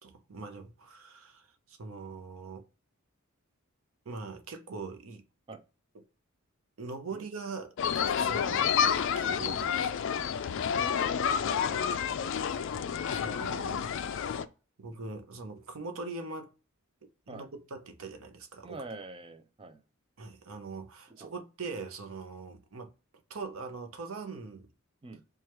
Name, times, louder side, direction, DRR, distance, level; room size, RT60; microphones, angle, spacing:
voice 1, 0.0-2.6 4.0-5.2 5.9-6.1 6.8-10.1 13.1-14.3 14.8-16.5 17.3-18.8 20.2-22.9 23.3-24.7, right 4 dB, 75° right, 0.7 m, -42 dB
sound 1, 7.8-14.4, left 7 dB, 60° left, 0.3 m, -29 dB
voice 2, 11.2-12.4 17.3-17.5 18.6-19.8 21.2-21.3 25.0-25.2, right 2 dB, 25° right, 0.4 m, -46 dB
4.6 x 2.3 x 3.0 m
head